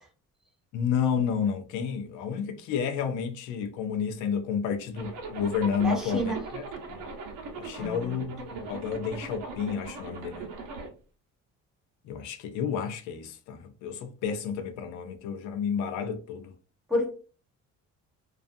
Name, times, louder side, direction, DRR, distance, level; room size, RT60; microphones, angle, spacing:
voice 1, 0.7-6.6 6.9-7.0 7.6-10.5 12.0-16.5, left 7 dB, 80° left, 0.5 m, -31 dB
Zipper (clothing), 5.0-10.9, right 3 dB, 75° right, 0.8 m, -39 dB
voice 2, 5.8-6.4 7.8-8.2 16.9-17.1, equal, ahead, 0.6 m, -29 dB
2.4 x 2.3 x 2.5 m
cardioid pair, 175°, 30 cm